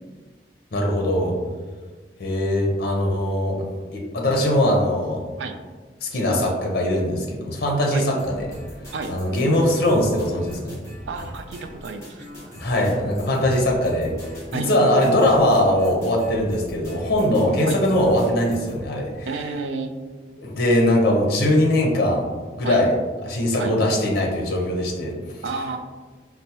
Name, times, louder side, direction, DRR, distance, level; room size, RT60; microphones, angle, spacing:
voice 1, 0.7-1.3 2.2-3.6 3.9-5.2 6.0-8.5 9.1-10.8 12.6-14.1 14.5-19.3 20.4-22.2 22.6-22.9 23.2-25.1, left 1 dB, 60° left, -1 dB, 0.6 m, -21 dB
sound 1, 8.2-18.8, equal, 15° left, 1.3 m, -40 dB
voice 2, 11.1-12.3 14.5-14.7 17.7-17.8 19.3-19.9 22.6-22.8 23.6-23.7 25.4-25.8, right 4 dB, 75° right, 7 dB, 0.3 m, -30 dB
4.4 x 2.0 x 2.8 m, 1.4 s
head